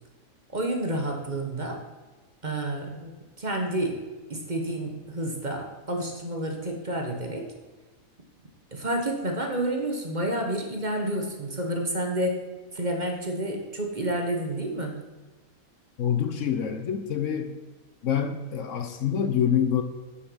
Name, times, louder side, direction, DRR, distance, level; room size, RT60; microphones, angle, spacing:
voice 1, 0.5-1.8 2.4-3.1 3.4-4.0 4.3-7.5 8.7-12.4 12.7-15.0, right 1 dB, 35° right, 2 dB, 1.3 m, -29 dB
voice 2, 16.0-17.5 18.0-19.8, left 8 dB, 65° left, 8 dB, 1.1 m, -26 dB
9.1 x 7.2 x 6.2 m, 1.2 s
omnidirectional pair, 1.5 m